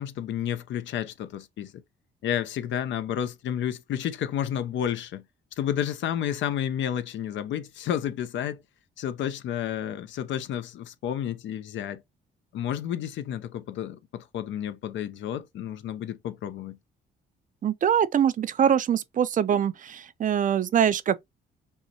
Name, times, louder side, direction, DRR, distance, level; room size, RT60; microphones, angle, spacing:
voice 1, 0.0-1.8 2.2-5.2 5.6-8.6 9.0-12.0 12.5-16.8, left 10 dB, 70° left, 0.5 m, -31 dB
voice 2, 17.6-21.2, right 9 dB, 40° right, 0.4 m, -23 dB
5.4 x 2.1 x 2.7 m
cardioid pair, 90°, 20 cm